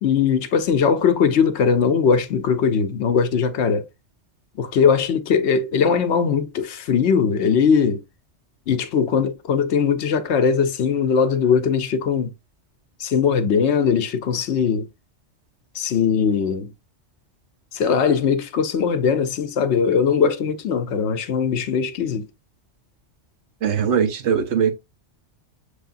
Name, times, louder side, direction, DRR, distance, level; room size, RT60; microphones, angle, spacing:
voice 1, 0.0-3.8 4.6-8.0 8.7-12.3 13.0-14.9 15.7-16.7 17.7-22.3, left 6 dB, 70° left, 0.9 m, -20 dB
voice 2, 23.6-24.7, right 7 dB, 70° right, 1.0 m, -20 dB
6.3 x 3.3 x 2.5 m
omnidirectional pair, 1.2 m